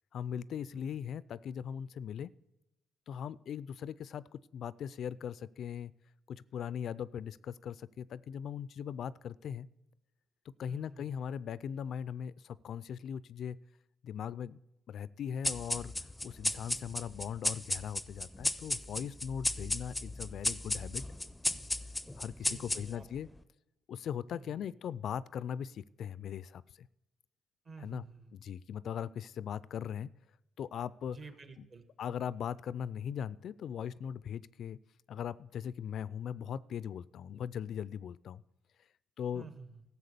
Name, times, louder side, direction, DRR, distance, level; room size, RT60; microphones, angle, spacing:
voice 1, 0.1-2.3 3.1-5.9 6.3-9.7 10.6-13.6 14.0-14.6 14.9-21.0 22.2-23.3 23.9-26.9 27.8-28.0 28.4-30.1 30.6-31.2 31.6-31.7 32.0-34.8 35.1-38.4 39.2-39.5, left 8 dB, 65° left, 20 dB, 0.3 m, -39 dB
voice 2, 10.7-11.1 22.3-23.0 24.3-24.6 27.6-28.4 31.1-31.8 39.3-39.8, right 4 dB, 40° right, 10 dB, 1.5 m, -51 dB
sound 1, 15.4-23.2, left 1 dB, 10° left, 0.5 m, -35 dB
13.5 x 7.2 x 6.8 m, 0.94 s
cardioid pair, 90°, 0 cm